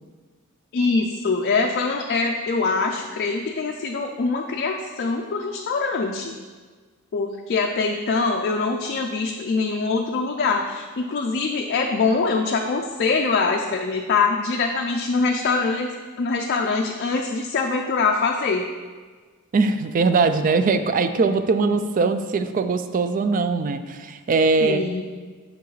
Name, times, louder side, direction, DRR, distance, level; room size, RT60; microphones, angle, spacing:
voice 1, 0.7-6.3 7.1-18.7 24.6-25.0, left 4 dB, 50° left, 1 dB, 0.4 m, -23 dB
voice 2, 19.5-24.8, right 4 dB, 40° right, 10 dB, 0.3 m, -21 dB
6.9 x 5.8 x 3.2 m, 1.5 s
head